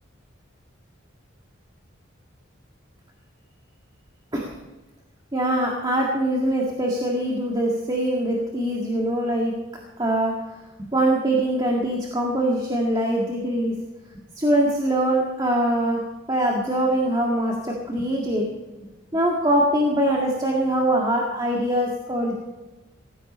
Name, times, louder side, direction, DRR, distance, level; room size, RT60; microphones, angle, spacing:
voice 1, 5.3-9.5 10.0-10.4 10.8-13.7 14.4-16.0 16.3-18.5 19.1-22.3, right 1 dB, 20° right, -2 dB, 1.9 m, -23 dB
17.5 x 15.0 x 4.3 m, 1.1 s
head